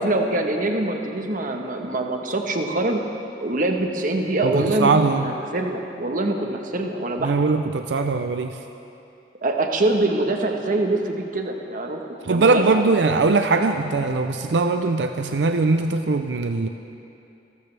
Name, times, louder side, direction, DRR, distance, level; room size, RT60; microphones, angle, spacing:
voice 1, 0.0-3.0 3.4-7.3 9.4-12.7, right 2 dB, 50° right, 3 dB, 1.2 m, -24 dB
voice 2, 4.5-5.3 7.2-8.6 12.3-16.7, right 3 dB, 90° right, 7 dB, 0.6 m, -21 dB
27.0 x 13.5 x 3.4 m, 2.8 s
head